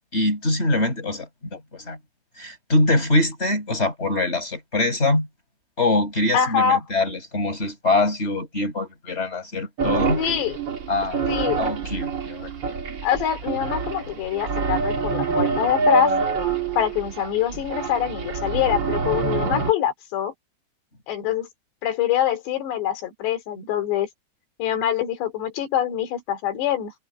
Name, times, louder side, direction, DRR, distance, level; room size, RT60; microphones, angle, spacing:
voice 1, 0.1-2.0 2.4-5.3 5.8-10.2 10.9-11.2 11.6-12.5, left 2 dB, 15° left, 5.2 m, -23 dB
voice 2, 6.3-6.8 10.1-10.5 11.3-11.7 13.0-16.1 16.8-20.3 21.1-21.5 21.8-24.1 24.6-26.9, left 9 dB, 90° left, 4.9 m, -24 dB
sound 1, 9.8-19.7, right 4 dB, 50° right, 1.4 m, -26 dB
omnidirectional pair, 4.8 m